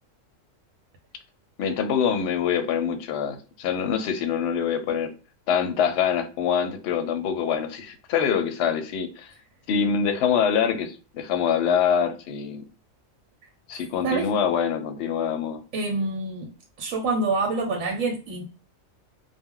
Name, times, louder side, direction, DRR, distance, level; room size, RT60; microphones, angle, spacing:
voice 1, 1.6-5.1 5.5-9.3 9.7-12.6 13.7-15.6, left 7 dB, 65° left, 0.7 m, -25 dB
voice 2, 15.7-16.5 16.8-18.4, right 3 dB, 85° right, 1.0 m, -26 dB
2.2 x 2.1 x 3.6 m
omnidirectional pair, 1.4 m